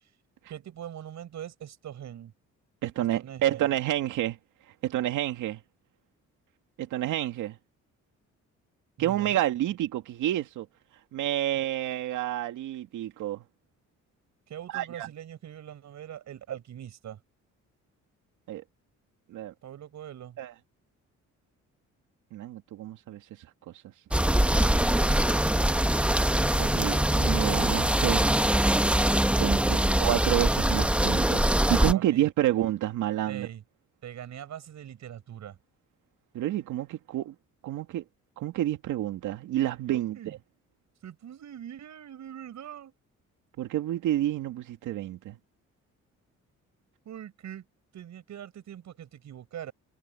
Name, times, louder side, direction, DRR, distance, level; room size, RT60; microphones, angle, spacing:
voice 1, 0.5-2.3 3.1-3.7 9.0-9.4 14.5-17.2 19.6-20.4 24.2-25.8 29.5-29.9 31.9-32.3 33.3-33.6 34.0-35.6 39.9-40.3 41.0-42.9 47.1-47.6 47.9-49.7, right 10 dB, 65° right, 7.5 m, -42 dB
voice 2, 2.8-4.4 4.8-5.6 6.8-7.6 9.0-10.7 11.1-13.4 14.7-15.1 18.5-18.6 19.3-19.5 20.4-20.5 22.3-23.2 26.6-28.3 29.4-31.4 31.7-33.5 36.3-37.3 37.6-38.0 38.4-40.2 43.6-45.4, right 13 dB, 85° right, 2.3 m, -29 dB
sound 1, 24.1-31.9, right 1 dB, 5° right, 1.0 m, -23 dB
cardioid pair, 90°, 30 cm